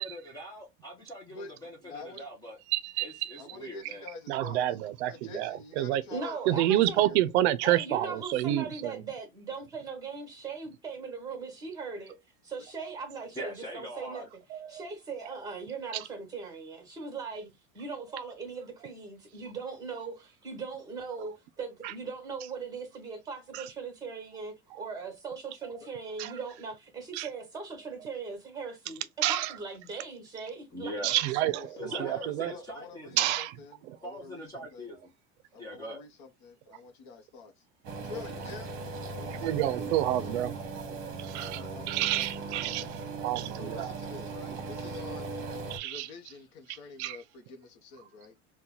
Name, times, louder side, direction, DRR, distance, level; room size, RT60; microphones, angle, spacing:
voice 1, 0.0-2.6 3.0-4.1 13.3-14.3 30.7-31.2 31.8-33.3 34.0-35.1 35.6-36.0, equal, 10° left, 0.5 m, -42 dB
voice 2, 1.8-2.3 3.4-4.6 5.1-7.2 31.4-34.5 34.7-34.9 35.5-37.6 38.0-38.7 39.1-40.4 41.3-42.9 43.5-45.3 45.8-48.4, left 4 dB, 50° left, 0.7 m, -47 dB
voice 3, 2.7-3.4 4.3-9.0 14.5-14.8 15.9-16.0 21.8-21.9 23.5-23.7 26.2-26.4 27.1-27.3 29.2-29.5 31.0-32.5 33.2-33.6 33.9-34.0 39.3-40.5 41.2-41.6 41.9-43.9 45.7-46.1 47.0-47.2, right 14 dB, 85° right, 0.5 m, -29 dB
voice 4, 6.1-7.1 7.6-12.2 12.4-14.2 14.7-17.5 17.7-30.9, right 4 dB, 10° right, 1.2 m, -39 dB
sound 1, 37.8-45.8, right 3 dB, 40° right, 1.0 m, -38 dB
2.8 x 2.2 x 3.7 m
cardioid pair, 165°, 32 cm